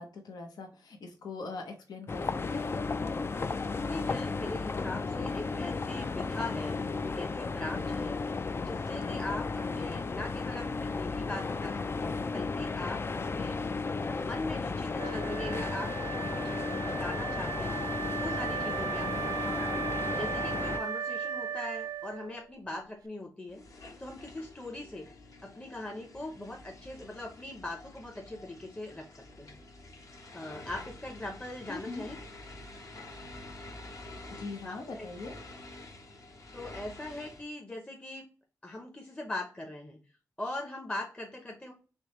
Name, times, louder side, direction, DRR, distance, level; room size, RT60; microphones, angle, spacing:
voice 1, 0.0-2.7 31.7-32.1 34.3-35.3, left 3 dB, 80° left, 3 dB, 0.8 m, -41 dB
sound 1, 2.1-20.8, left 4 dB, 35° left, 0.3 m, -34 dB
voice 2, 3.7-6.8 7.0-8.2 8.6-13.6 14.1-17.8 18.2-19.7 20.2-23.6 24.0-25.1 25.4-29.1 29.4-29.6 30.3-32.2 34.6-35.1 36.5-38.3 38.6-40.0 40.4-41.7, left 2 dB, 15° left, 2 dB, 0.7 m, -41 dB
Wind instrument woodwind instrument, 14.9-22.5, right 7 dB, 80° right, 0.6 m, -36 dB
sound 2, 23.5-37.4, left 2 dB, 55° left, 0.9 m, -48 dB
3.4 x 3.2 x 3.0 m, 0.37 s
cardioid pair, 55°, 7 cm